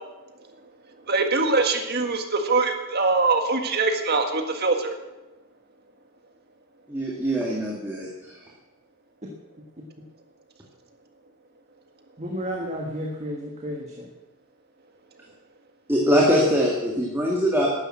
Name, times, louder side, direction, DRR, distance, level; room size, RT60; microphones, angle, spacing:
voice 1, 1.1-4.9, right 3 dB, 45° right, 5 dB, 1.8 m, -23 dB
voice 2, 6.9-8.4 15.9-17.7, equal, 10° right, -3 dB, 2.1 m, -22 dB
voice 3, 12.2-14.1, equal, 30° right, 0 dB, 1.6 m, -32 dB
12.0 x 10.5 x 7.7 m, 1.1 s
head